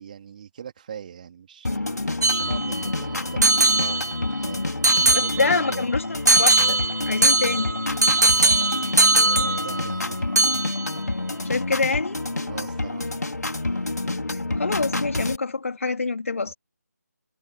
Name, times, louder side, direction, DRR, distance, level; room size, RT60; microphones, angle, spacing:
voice 1, 0.0-5.9 8.3-10.6 12.4-13.2, right 8 dB, 30° right, 3.3 m, -41 dB
sound 1, 1.6-15.4, left 2 dB, 70° left, 2.8 m, -28 dB
sound 2, 2.2-2.9 3.4-4.4 4.8-5.7 6.3-10.1 10.4-11.0, right 2 dB, 75° right, 0.9 m, -21 dB
sound 3, 2.4-12.9, right 4 dB, 5° right, 4.2 m, -53 dB
voice 2, 5.1-6.8 7.1-7.7 11.4-12.2 14.6-16.5, left 4 dB, 50° left, 2.9 m, -26 dB
figure-of-eight pair, 155°, 9 cm